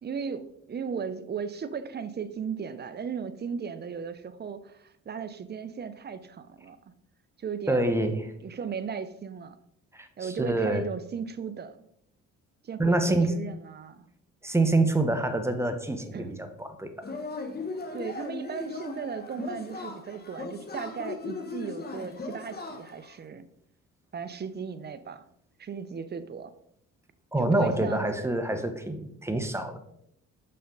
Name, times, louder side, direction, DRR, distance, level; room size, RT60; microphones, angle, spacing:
voice 1, 0.0-6.8 7.4-7.9 8.4-9.6 10.2-11.8 12.6-14.1 16.1-16.4 17.9-23.4 24.1-25.2 25.6-26.5 27.4-28.3, right 6 dB, 35° right, 12 dB, 0.6 m, -36 dB
voice 2, 7.7-8.3 9.9-10.9 12.8-13.3 14.4-16.9 27.3-29.8, right 2 dB, 10° right, 7 dB, 0.9 m, -26 dB
Yell / Cheering, 17.0-23.1, left 3 dB, 30° left, 1.1 m, -38 dB
6.4 x 5.6 x 3.8 m, 0.72 s
cardioid pair, 90°, 30 cm